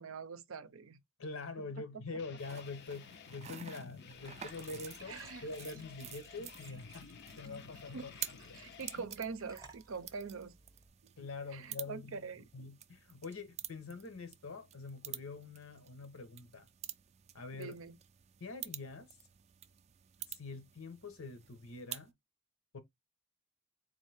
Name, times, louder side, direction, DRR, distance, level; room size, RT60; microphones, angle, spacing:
voice 1, 0.0-1.0 5.0-5.5 7.9-8.1 8.5-10.6 11.0-11.1 11.5-12.4 17.5-18.0, right 5 dB, 75° right, 0.6 m, -44 dB
voice 2, 1.2-7.1 7.4-8.6 11.2-16.7 17.3-17.7 18.4-19.2 20.3-22.1 22.7-22.8, left 3 dB, 85° left, 0.9 m, -45 dB
sound 1, 2.2-9.1, left 6 dB, 55° left, 0.4 m, -52 dB
sound 2, 2.4-22.1, right 11 dB, 30° right, 0.3 m, -50 dB
Glass / Trickle dribble / Fill (with liquid), 4.1-10.9, right 3 dB, 15° right, 0.7 m, -59 dB
3.7 x 2.7 x 3.3 m
head